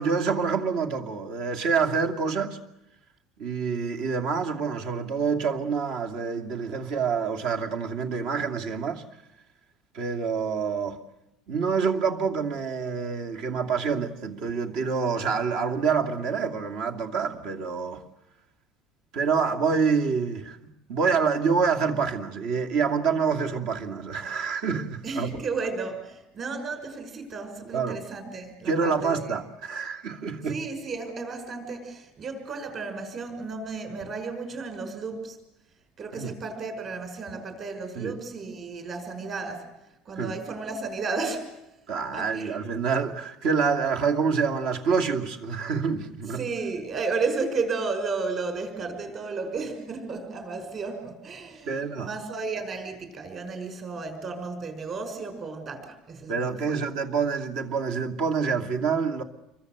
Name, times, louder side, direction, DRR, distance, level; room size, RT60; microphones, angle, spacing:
voice 1, 0.0-2.6 3.4-9.0 9.9-11.0 11.5-18.0 19.1-25.4 27.7-28.0 28.6-30.6 36.1-36.4 38.0-38.2 40.2-40.3 41.9-46.5 51.7-52.2 56.3-59.2, right 5 dB, 60° right, 2.6 m, -27 dB
voice 2, 25.0-29.3 30.5-35.4 36.0-41.6 42.1-42.6 46.4-56.7, right 4 dB, 30° right, 5.6 m, -33 dB
28.0 x 23.0 x 8.0 m
cardioid pair, 160°, 0 cm